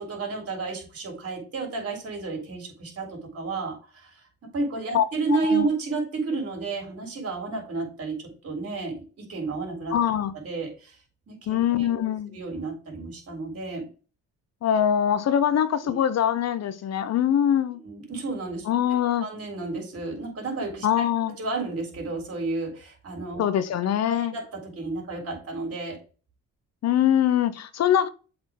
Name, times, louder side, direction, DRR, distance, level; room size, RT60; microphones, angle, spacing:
voice 1, 0.0-10.0 10.4-11.0 11.3-13.9 15.8-16.0 17.8-18.7 19.0-23.4 24.1-24.4 24.8-26.0, right 3 dB, 50° right, 3.7 m, -31 dB
voice 2, 9.9-10.3 11.5-12.4 14.6-17.8 18.7-19.3 20.8-21.4 23.4-24.3 26.8-28.1, left 10 dB, 60° left, 0.7 m, -23 dB
7.6 x 4.3 x 3.6 m
cardioid pair, 90°, 30 cm